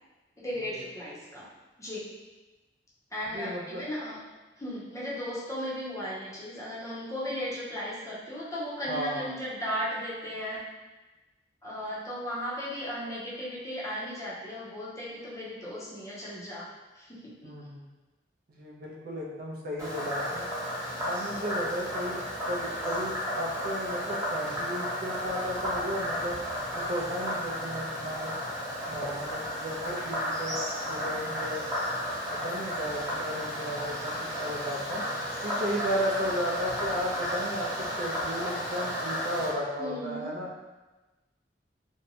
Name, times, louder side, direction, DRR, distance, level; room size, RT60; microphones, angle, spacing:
voice 1, 0.4-1.5 1.8-2.1 3.1-4.2 4.6-10.6 11.6-16.7 16.9-17.5 39.8-40.3, equal, 20° left, -7 dB, 0.6 m, -36 dB
voice 2, 3.3-3.8 8.9-9.3 17.4-17.8 18.5-20.5 21.0-22.2 22.5-26.4 26.7-28.3 28.9-30.6 30.9-31.6 32.3-34.1 34.4-35.1 35.4-40.5, equal, 55° right, -3 dB, 0.5 m, -34 dB
Frog, 19.8-39.5, equal, 20° right, 0.7 m, -33 dB
2.6 x 2.1 x 2.7 m, 1.1 s
head